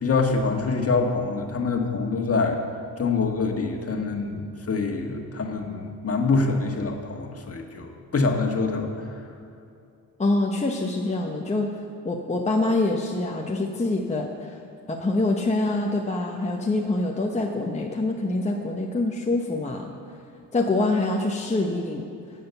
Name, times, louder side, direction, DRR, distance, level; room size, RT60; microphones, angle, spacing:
voice 1, 0.0-2.6 3.0-9.1, left 4 dB, 35° left, 3 dB, 1.6 m, -25 dB
voice 2, 10.2-11.7 12.0-14.6 14.9-19.9 20.5-22.0, left 2 dB, 15° left, 0 dB, 1.0 m, -25 dB
11.5 x 7.7 x 7.0 m, 2.6 s
cardioid pair, 85°, 39 cm